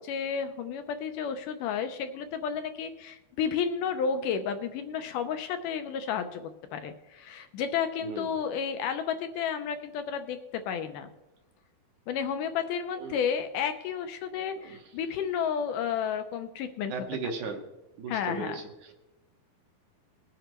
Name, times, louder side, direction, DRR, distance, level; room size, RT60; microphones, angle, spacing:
voice 1, 0.0-10.4 10.7-11.1 12.1-16.9 18.1-18.6, left 7 dB, 80° left, 8 dB, 1.9 m, -32 dB
voice 2, 8.0-8.3 13.0-13.2 14.3-14.8 16.9-17.6 18.0-18.9, right 4 dB, 70° right, 3 dB, 2.1 m, -37 dB
20.0 x 10.0 x 3.0 m, 1.0 s
omnidirectional pair, 4.3 m